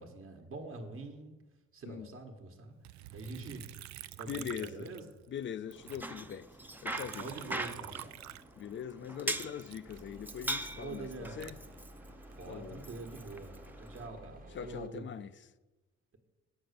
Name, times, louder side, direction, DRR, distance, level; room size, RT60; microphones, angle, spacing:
voice 1, 0.0-1.3 1.7-2.7 3.1-3.7 4.1-5.3 7.2-8.3 10.7-11.6 12.4-15.2, right 3 dB, 45° right, 1.4 m, -45 dB
Liquid, 2.8-5.4 5.7-8.9 9.3-12.4 12.9-13.5, right 13 dB, 70° right, 0.4 m, -48 dB
voice 2, 4.3-6.5 6.8-7.5 8.6-11.6 12.5-12.8 14.5-15.3, left 8 dB, 40° left, 0.5 m, -42 dB
Bicycle, 5.7-14.1, right 1 dB, 5° right, 0.6 m, -42 dB
sound 1, 9.9-14.9, equal, 30° right, 1.2 m, -53 dB
8.0 x 6.0 x 6.6 m
cardioid pair, 90°, 30 cm